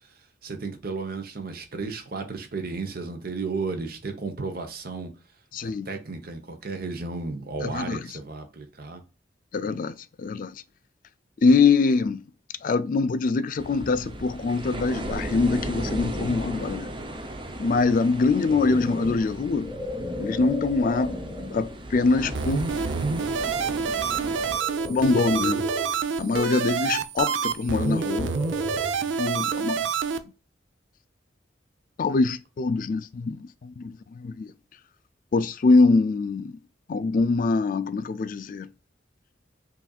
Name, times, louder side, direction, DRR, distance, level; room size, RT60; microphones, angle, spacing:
voice 1, 0.4-5.1 5.6-9.0, right 4 dB, 55° right, 0.9 m, -33 dB
voice 2, 5.5-5.9 7.6-8.2 9.5-10.6 11.4-12.2 12.6-16.9 17.6-19.8 20.2-21.2 21.5-22.8 24.8-25.7 26.2-28.4 29.2-29.9 32.0-34.5 35.3-36.5 36.9-38.7, left 4 dB, 45° left, 0.3 m, -24 dB
sound 1, 13.6-24.6, right 1 dB, 25° right, 0.6 m, -36 dB
sound 2, 18.2-21.8 22.5-22.7 24.5-26.0 27.7-29.2, left 1 dB, 10° right, 1.0 m, -36 dB
sound 3, 22.3-30.2, right 6 dB, 90° right, 0.5 m, -27 dB
5.6 x 2.6 x 2.3 m
head